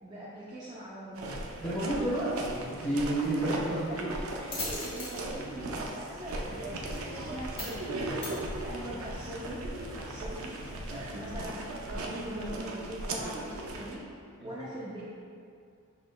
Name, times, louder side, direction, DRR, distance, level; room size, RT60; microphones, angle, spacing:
voice 1, 0.0-1.4 3.4-14.0 14.4-15.0, right 1 dB, 20° right, -10 dB, 0.5 m, -42 dB
sound 1, 1.2-14.0, right 2 dB, 75° right, 0.4 m, -38 dB
voice 2, 1.6-4.1 5.3-5.5 7.2-7.3 8.0-8.1 14.4-14.5, right 1 dB, 5° left, -10 dB, 1.2 m, -31 dB
sound 2, 2.7-9.1, left 2 dB, 25° left, 1.0 m, -44 dB
Car / Idling, 6.3-11.4, left 2 dB, 70° left, 0.5 m, -48 dB
6.1 x 3.1 x 2.2 m, 2.3 s
head